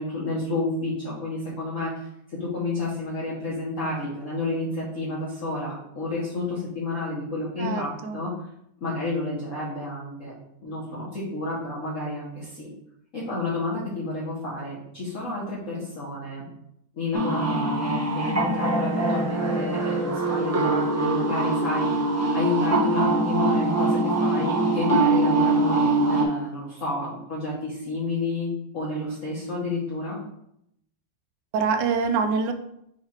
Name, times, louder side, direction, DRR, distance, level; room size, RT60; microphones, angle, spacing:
voice 1, 0.0-8.3 8.8-10.3 10.6-12.7 13.1-16.5 16.9-22.1 22.3-30.2, left 2 dB, 45° left, -7 dB, 1.4 m, -30 dB
voice 2, 7.6-8.3 31.5-32.5, right 5 dB, 70° right, 7 dB, 1.2 m, -25 dB
sound 1, 17.1-26.2, right 2 dB, 15° right, 0.5 m, -23 dB
4.7 x 4.7 x 4.4 m, 0.77 s
omnidirectional pair, 2.2 m